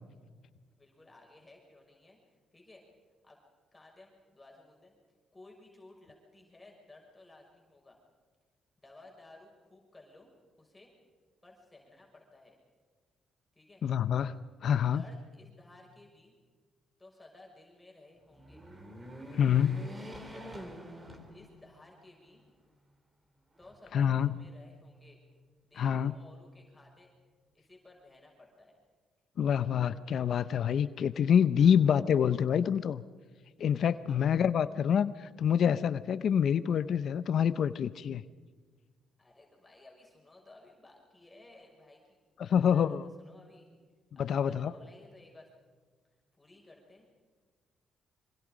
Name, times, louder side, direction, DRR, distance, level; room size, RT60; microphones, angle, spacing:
voice 1, 0.8-2.8 3.2-3.4 3.7-4.9 5.3-8.0 8.8-10.3 10.6-10.9 11.4-12.6 13.5-13.8 14.9-16.3 17.0-18.7 20.3-20.6 21.3-22.4 23.6-25.2 25.6-27.1 27.5-28.8 31.6-31.7 34.1-34.2 39.2-42.2 42.4-43.7 44.1-45.5 46.4-47.1, left 2 dB, 15° left, 0 dB, 6.1 m, -56 dB
voice 2, 13.8-15.0 19.3-20.0 23.9-24.4 25.8-26.1 29.4-33.0 33.6-38.2 42.4-43.1 44.2-44.7, left 8 dB, 65° left, 14 dB, 0.7 m, -27 dB
sound 1, 18.3-21.9 22.4-22.5 23.6-24.4, equal, 20° right, 3.4 m, -46 dB
25.0 x 24.5 x 5.2 m, 1.5 s
cardioid pair, 90°, 0 cm